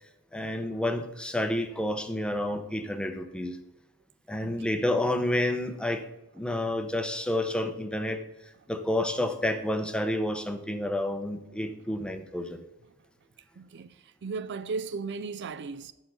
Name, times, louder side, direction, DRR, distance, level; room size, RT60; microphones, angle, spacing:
voice 1, 0.3-3.6 4.3-6.0 6.3-8.2 8.7-12.6, left 1 dB, 5° left, 0.6 m, -29 dB
voice 2, 4.4-4.8 13.6-15.9, right 4 dB, 55° right, 0.4 m, -36 dB
8.3 x 5.2 x 6.2 m
head